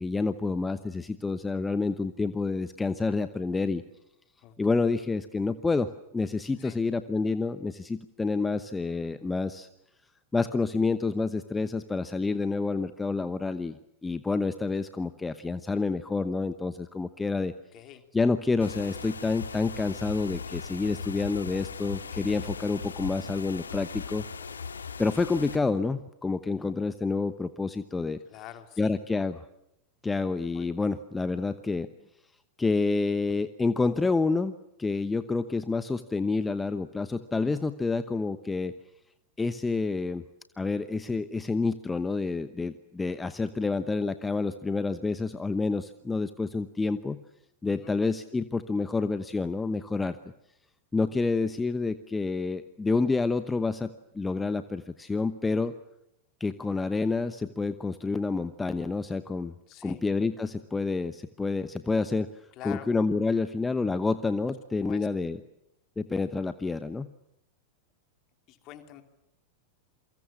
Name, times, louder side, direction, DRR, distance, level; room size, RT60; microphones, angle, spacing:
voice 1, 0.0-3.8 4.6-9.7 10.3-13.8 14.0-17.5 18.1-24.2 25.0-28.2 28.8-29.5 30.0-31.9 32.6-34.5 34.8-38.7 39.4-40.2 40.6-47.2 47.6-50.2 50.9-55.7 56.4-59.5 59.8-62.3 62.6-65.4 66.0-67.1, left 3 dB, 10° left, 12 dB, 1.0 m, -28 dB
voice 2, 17.7-18.1 28.3-29.0 30.5-30.7 47.6-47.9 59.7-60.1 62.5-62.9 64.8-65.1 68.5-69.0, left 12 dB, 40° left, 7 dB, 3.1 m, -45 dB
sound 1, 18.6-25.6, left 5 dB, 70° left, 1.9 m, -39 dB
28.5 x 24.0 x 7.4 m, 0.81 s
figure-of-eight pair, 90°, 0 cm